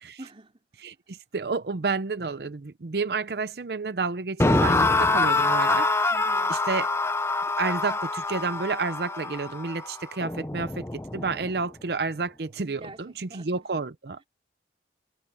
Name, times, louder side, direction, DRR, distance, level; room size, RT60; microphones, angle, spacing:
voice 1, 0.2-0.6 6.1-6.6 11.3-11.5 12.7-13.7, right 2 dB, 35° right, 3.3 m, -46 dB
voice 2, 0.8-6.2 6.5-6.9 7.6-14.2, right 4 dB, 65° right, 0.6 m, -30 dB
sound 1, 4.4-11.5, left 3 dB, 15° left, 0.5 m, -25 dB
head